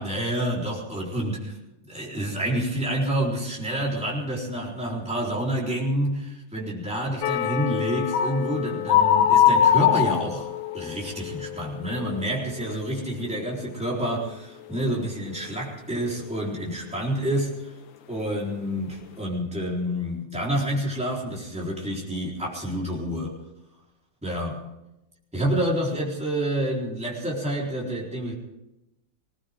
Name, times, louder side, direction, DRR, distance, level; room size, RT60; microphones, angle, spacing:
voice 1, 0.0-1.6 1.8-17.7 18.1-23.4 24.2-24.6 25.3-28.3, right 1 dB, 5° right, -4 dB, 3.9 m, -28 dB
sound 1, 7.2-13.0 13.3-13.6 14.0-14.2, left 9 dB, 90° left, 1.5 m, -23 dB
21.0 x 18.0 x 3.7 m, 0.92 s
omnidirectional pair, 2.0 m